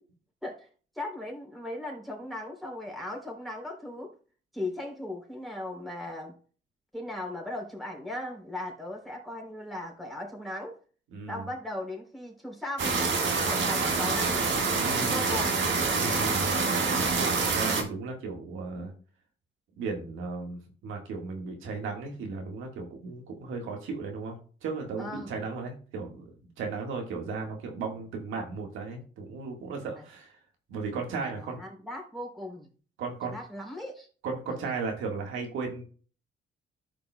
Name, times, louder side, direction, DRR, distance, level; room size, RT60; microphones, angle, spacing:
voice 1, 0.9-4.1 4.5-6.4 6.9-10.8 11.3-14.5 14.9-15.6 15.9-16.3 25.0-25.3 29.9-30.0 31.4-32.7 33.3-34.1 34.5-34.6, left 1 dB, ahead, 0 dB, 3.4 m, -38 dB
voice 2, 11.1-11.4 14.7-15.3 15.9-18.9 19.8-26.3 26.6-30.4 30.7-31.6 33.0-33.4 34.2-35.8, right 4 dB, 85° right, 2 dB, 1.7 m, -36 dB
sound 1, 12.8-17.8, right 4 dB, 70° right, 1.7 m, -26 dB
13.5 x 5.3 x 2.3 m, 0.40 s
cardioid pair, 90°, 20 cm